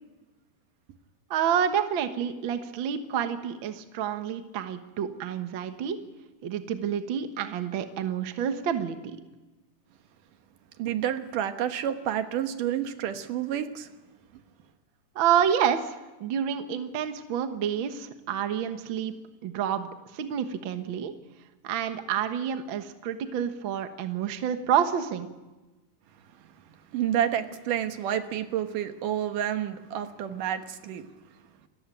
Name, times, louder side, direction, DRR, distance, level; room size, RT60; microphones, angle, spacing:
voice 1, 1.3-6.0 6.4-9.2 15.1-19.1 19.4-19.9 20.1-21.1 21.6-25.3, right 8 dB, 50° right, 8 dB, 1.5 m, -28 dB
voice 2, 10.8-13.9 26.9-31.1, right 10 dB, 80° right, 8 dB, 2.8 m, -29 dB
27.5 x 14.5 x 9.1 m, 1.1 s
omnidirectional pair, 3.8 m